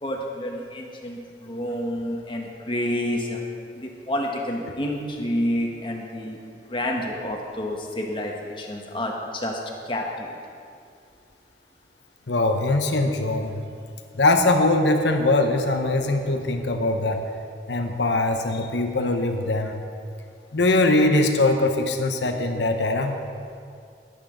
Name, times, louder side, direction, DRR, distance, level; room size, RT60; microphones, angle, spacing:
voice 1, 0.0-3.4 3.7-6.4 6.7-9.6 9.8-10.3, left 1 dB, 25° left, 0 dB, 1.4 m, -29 dB
voice 2, 12.3-13.6 14.1-17.2 17.7-19.7 20.5-23.2, left 2 dB, 70° left, 5 dB, 0.9 m, -21 dB
20.5 x 8.3 x 3.9 m, 2.4 s
head